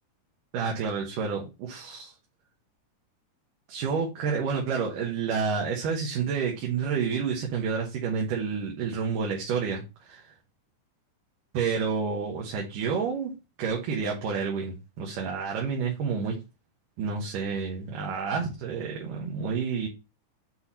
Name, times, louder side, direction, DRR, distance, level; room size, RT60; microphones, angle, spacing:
voice 1, 0.5-2.1 3.7-10.2 11.5-13.3 13.6-16.4 17.0-19.9, right 5 dB, 85° right, -1 dB, 2.9 m, -29 dB
8.0 x 4.1 x 3.0 m, 0.27 s
omnidirectional pair, 3.6 m